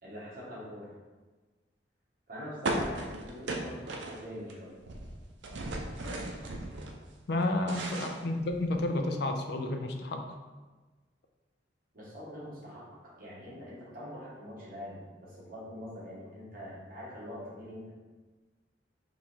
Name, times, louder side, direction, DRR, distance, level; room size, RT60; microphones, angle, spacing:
voice 1, 0.0-0.9 2.3-4.8 7.4-7.7 11.9-17.9, equal, 50° right, -6 dB, 1.4 m, -44 dB
sound 1, 2.6-4.5 4.8-6.9 7.3-8.9, right 2 dB, 75° right, 0.6 m, -36 dB
voice 2, 7.3-10.2, left 2 dB, 60° left, 4 dB, 0.5 m, -31 dB
3.6 x 3.0 x 4.3 m, 1.3 s
head